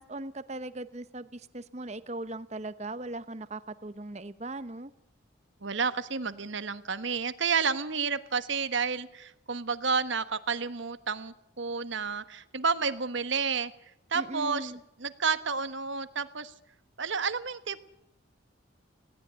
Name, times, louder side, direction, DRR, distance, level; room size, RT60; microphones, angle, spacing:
voice 1, 0.0-4.9 14.1-14.8, right 2 dB, 35° right, 13 dB, 0.9 m, -39 dB
voice 2, 5.6-13.7 14.1-14.7 15.0-16.5 17.0-17.9, right 5 dB, 70° right, 12 dB, 1.3 m, -30 dB
20.0 x 17.0 x 9.6 m, 0.81 s
head